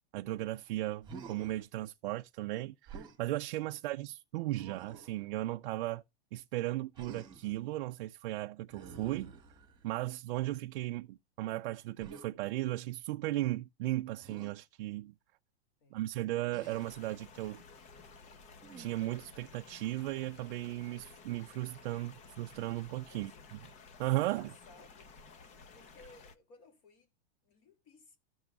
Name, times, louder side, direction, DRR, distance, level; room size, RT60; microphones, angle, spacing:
voice 1, 0.1-6.0 6.3-9.3 9.8-15.1 15.9-17.6 18.8-23.6 24.0-24.5, right 16 dB, 50° right, 0.4 m, -36 dB
Human voice, 1.0-1.6 2.9-3.2 4.5-5.2 6.9-7.6 8.7-9.9 12.0-12.3 14.2-14.5 16.5-17.0 18.6-19.1, right 5 dB, 15° right, 1.6 m, -50 dB
voice 2, 3.6-4.0 15.8-16.0 23.1-23.4 24.2-25.1 25.7-27.1 27.4-28.2, left 3 dB, 40° left, 2.6 m, -60 dB
sound 1, 16.6-26.4, left 4 dB, 20° left, 0.6 m, -55 dB
15.0 x 6.2 x 2.3 m
supercardioid pair, 155°, 34 cm